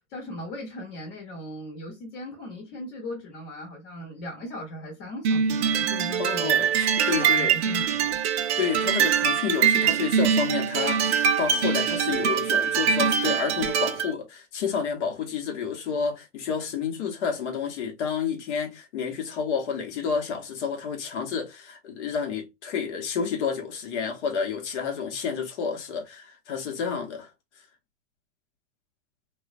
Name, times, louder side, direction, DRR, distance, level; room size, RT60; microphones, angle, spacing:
voice 1, 0.1-6.7 7.1-8.2, left 1 dB, 50° left, 1.1 m, -38 dB
sound 1, 5.2-14.1, right 7 dB, 65° right, 0.5 m, -23 dB
voice 2, 6.2-7.5 8.6-27.3, left 6 dB, 70° left, 1.0 m, -30 dB
2.3 x 2.2 x 2.4 m
hypercardioid pair, 105°, 36 cm